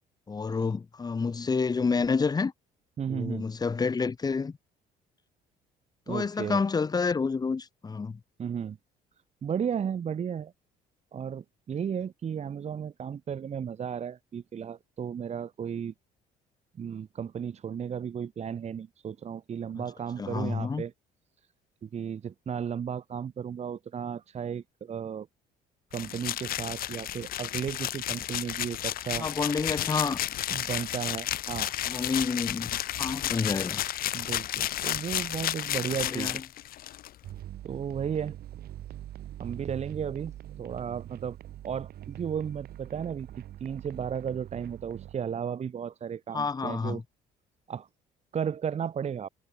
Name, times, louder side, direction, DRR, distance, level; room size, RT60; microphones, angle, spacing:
voice 1, 0.3-2.5 3.1-4.5 6.1-8.2 20.2-20.8 29.2-30.2 31.9-32.7 33.0-34.0 36.1-36.4 46.3-47.0, left 5 dB, 25° left, 1.2 m, -29 dB
voice 2, 3.0-3.5 6.1-6.6 8.4-8.8 9.4-10.5 11.1-15.9 16.8-20.9 21.8-25.3 25.9-29.3 29.6-29.7 30.5-31.7 34.1-36.4 37.6-38.4 39.4-41.4 41.6-47.0 47.7-47.9 48.3-49.3, right 8 dB, 40° right, 1.7 m, -34 dB
sound 1, 25.9-37.1, left 13 dB, 60° left, 1.0 m, -32 dB
sound 2, 37.2-45.2, right 12 dB, 65° right, 5.9 m, -43 dB
cardioid pair, 110°, 17 cm